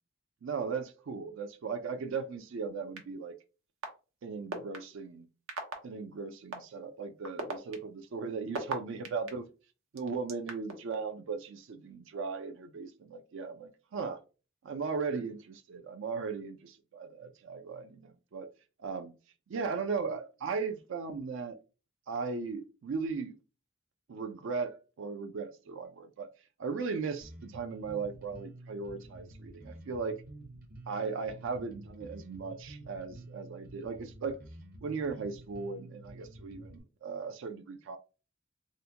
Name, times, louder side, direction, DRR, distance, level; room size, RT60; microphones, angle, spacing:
voice 1, 0.4-3.3 4.2-5.3 5.8-9.5 9.9-14.2 14.6-16.6 17.0-18.5 18.8-19.1 19.5-21.6 22.1-23.3 24.1-26.3 26.6-30.2 30.9-34.4 34.8-38.0, right 5 dB, 65° right, 0.4 m, -37 dB
sound 1, 3.0-3.1 3.8-3.9 4.5-4.8 5.5-5.7 6.5-6.6 7.2-9.3 10.0-10.7, right 3 dB, 85° right, 0.8 m, -36 dB
Bass guitar, 27.2-36.8, right 1 dB, 45° right, 0.7 m, -50 dB
3.7 x 2.1 x 2.7 m
head